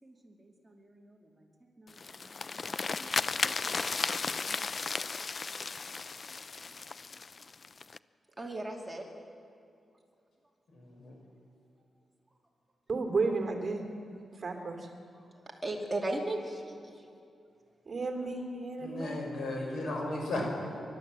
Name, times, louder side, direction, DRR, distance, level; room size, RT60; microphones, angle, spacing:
voice 1, 0.0-1.5 1.8-2.5 3.0-4.1 4.5-4.9 6.6-6.7 8.4-9.1 15.1-17.0, right 1 dB, 10° right, -1 dB, 2.6 m, -40 dB
sound 1, 1.9-8.0, left 4 dB, 40° left, 0.4 m, -35 dB
voice 2, 10.7-11.2 18.8-20.4, left 2 dB, 80° left, 0 dB, 6.2 m, -35 dB
voice 3, 12.9-13.8 14.4-14.9 17.9-19.3, right 3 dB, 35° right, 3 dB, 3.0 m, -33 dB
30.0 x 12.5 x 7.6 m, 2.4 s
wide cardioid pair, 120°, 0 cm